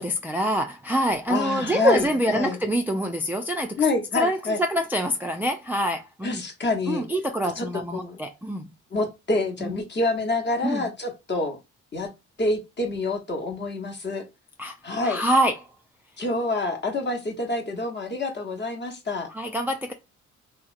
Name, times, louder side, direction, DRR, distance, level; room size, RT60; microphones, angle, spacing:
voice 1, 0.0-3.8 4.1-6.4 6.9-8.7 9.6-9.7 10.6-10.8 14.6-14.8 15.0-15.5 19.3-19.9, equal, 5° right, 0.3 m, -25 dB
voice 2, 1.3-2.6 3.8-4.6 6.2-7.0 7.6-7.7 7.9-8.2 8.9-11.6 11.9-12.1 12.4-14.2 14.8-15.2 16.2-19.3, left 2 dB, 35° left, 0.9 m, -27 dB
2.7 x 2.1 x 2.5 m
supercardioid pair, 55°, 31 cm